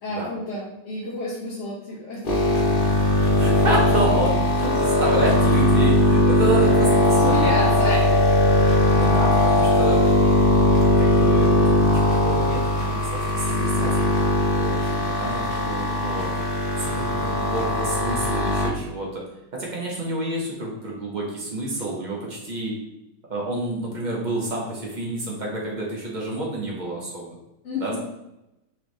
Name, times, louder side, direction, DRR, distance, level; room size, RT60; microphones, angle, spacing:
voice 1, 0.0-2.5 4.6-4.8 7.2-8.2 27.6-28.0, left 1 dB, 50° left, -7 dB, 1.2 m, -30 dB
sound 1, 2.2-18.7, left 1 dB, 75° left, 0.5 m, -19 dB
voice 2, 3.3-7.9 8.9-10.0 11.0-16.3 16.8-19.2 19.5-22.7 23.3-27.3 27.8-28.0, right 2 dB, 60° right, -3 dB, 0.4 m, -29 dB
4.4 x 3.2 x 3.1 m, 0.89 s
omnidirectional pair, 2.1 m